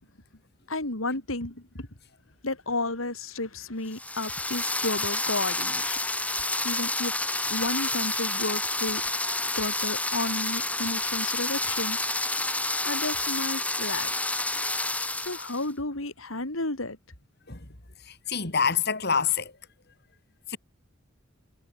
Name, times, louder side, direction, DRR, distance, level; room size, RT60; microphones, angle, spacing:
voice 1, 0.7-1.9 2.4-6.0 6.6-7.1 7.5-9.0 9.5-12.0 12.8-14.1 15.2-17.0, left 2 dB, 85° left, 4.2 m, -32 dB
sound 1, 3.9-15.6, left 2 dB, 5° left, 2.7 m, -29 dB
voice 2, 18.0-19.5 20.5-20.6, left 6 dB, 55° left, 3.9 m, -26 dB
head